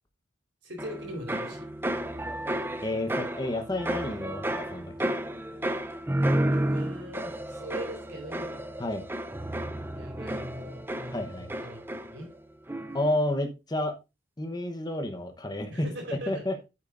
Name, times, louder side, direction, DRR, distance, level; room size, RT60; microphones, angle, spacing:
voice 1, 0.6-1.6 6.6-8.7 9.9-12.3 15.7-16.5, equal, 65° right, 2 dB, 4.3 m, -41 dB
sound 1, 0.8-12.4 12.7-13.2, right 1 dB, 10° right, 0.5 m, -32 dB
voice 2, 2.8-5.2 8.8-9.0 11.1-11.5 12.9-14.0 14.4-15.9 16.3-16.6, left 1 dB, 20° left, 5 dB, 1.0 m, -30 dB
9.1 x 8.6 x 2.6 m, 0.26 s
head